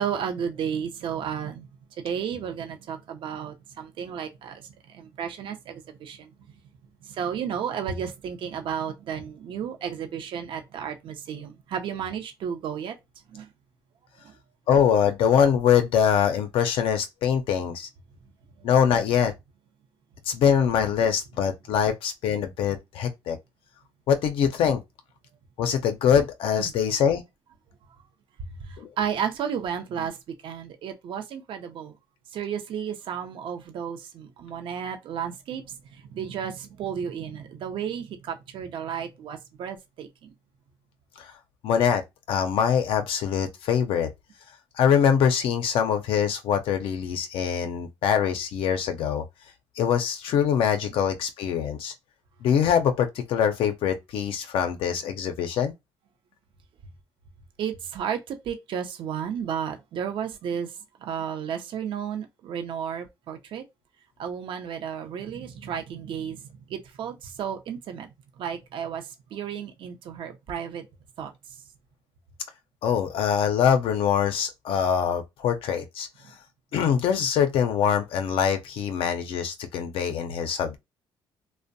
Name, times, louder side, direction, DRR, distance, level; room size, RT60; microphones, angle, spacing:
voice 1, 0.0-1.7 2.0-6.3 7.0-12.9 13.3-13.5 14.2-14.3 26.6-26.7 28.4-30.2 30.4-31.9 32.3-40.3 57.6-60.7 61.0-63.6 64.2-66.4 66.7-68.1 68.4-70.9 71.2-71.3, right 8 dB, 65° right, 0.5 m, -33 dB
voice 2, 14.7-17.9 18.6-19.3 20.3-23.4 24.1-24.8 25.6-27.2 28.8-28.9 41.2-41.3 41.6-42.0 42.3-44.1 44.8-49.2 49.8-51.9 52.4-55.7 72.8-76.1 76.7-80.8, left 8 dB, 70° left, 0.4 m, -23 dB
2.5 x 2.0 x 2.5 m
cardioid pair, 100°, 9 cm